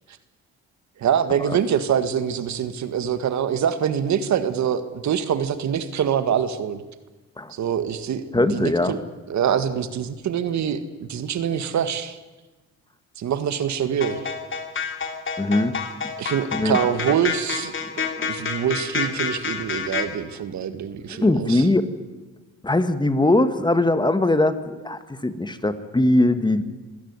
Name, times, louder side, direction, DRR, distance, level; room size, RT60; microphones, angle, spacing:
voice 1, 1.0-6.8 7.5-9.0 9.3-12.2 13.2-14.2 16.2-17.7 18.3-21.7, right 8 dB, 65° right, 11 dB, 1.8 m, -24 dB
voice 2, 8.3-8.9 15.4-15.7 16.5-16.8 18.2-18.3 21.1-21.9 22.6-26.6, left 2 dB, 15° left, 10 dB, 1.7 m, -20 dB
sound 1, 14.0-20.1, left 5 dB, 40° left, 2.9 m, -28 dB
25.5 x 17.0 x 9.7 m, 1.2 s
cardioid pair, 90°, 30 cm